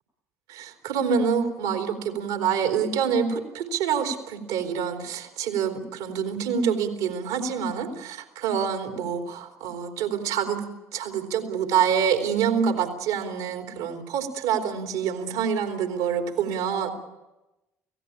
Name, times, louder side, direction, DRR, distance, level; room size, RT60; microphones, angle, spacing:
voice 1, 0.5-10.6 10.9-16.9, right 7 dB, 70° right, 4 dB, 3.3 m, -26 dB
29.5 x 17.0 x 8.6 m, 1.0 s
figure-of-eight pair, 50°, 8 cm